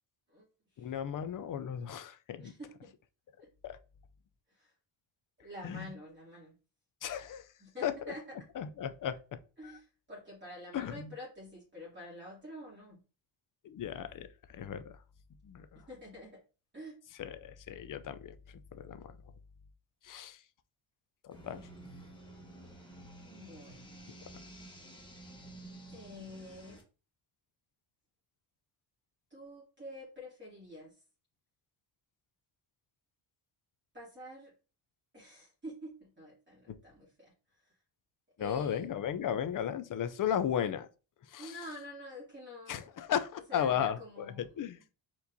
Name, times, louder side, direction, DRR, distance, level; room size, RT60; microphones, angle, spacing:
voice 1, 0.8-2.5 3.6-3.8 5.6-5.9 7.0-7.5 7.8-7.9 8.6-9.2 10.7-11.1 13.6-15.0 15.4-15.8 17.2-18.4 18.7-19.0 20.0-20.4 21.2-21.7 36.7-36.8 38.4-40.9 41.3-41.5 42.7-44.8, left 9 dB, 45° left, 0.5 m, -35 dB
voice 2, 2.4-2.9 3.4-3.5 4.5-4.7 5.4-6.5 7.6-8.2 9.6-13.0 15.9-16.4 16.7-17.0 23.3-23.9 25.9-26.8 29.3-30.9 33.9-34.5 35.1-37.7 38.4-38.9 41.4-42.9 43.5-44.5, left 1 dB, 25° right, 2.5 m, -48 dB
presented in doubly, 21.3-26.8, right 1 dB, 10° left, 1.3 m, -51 dB
4.4 x 4.1 x 2.7 m
cardioid pair, 115°, 47 cm